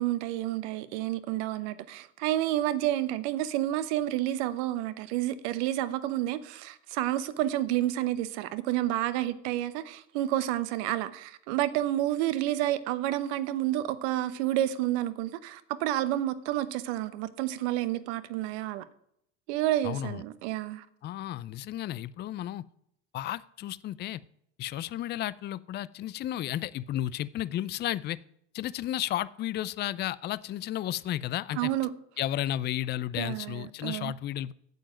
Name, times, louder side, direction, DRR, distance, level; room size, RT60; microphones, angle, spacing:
voice 1, 0.0-18.8 19.5-20.8 31.6-31.9 33.2-34.1, right 14 dB, 65° right, 1.1 m, -30 dB
voice 2, 19.8-20.2 21.0-22.6 23.1-24.2 24.6-28.2 28.5-31.7 32.2-34.5, left 13 dB, 30° left, 0.5 m, -33 dB
9.1 x 7.4 x 8.9 m
hypercardioid pair, 95°, 36 cm